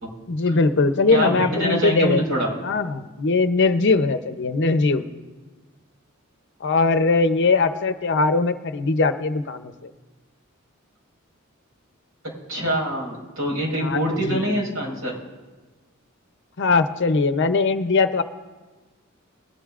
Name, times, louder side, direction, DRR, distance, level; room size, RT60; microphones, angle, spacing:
voice 1, 0.3-5.0 6.6-9.9 13.8-14.6 16.6-18.2, left 3 dB, 60° left, 10 dB, 0.7 m, -21 dB
voice 2, 1.1-2.5 12.5-15.1, equal, 90° right, -3 dB, 4.6 m, -24 dB
21.0 x 12.5 x 2.5 m, 1.3 s
head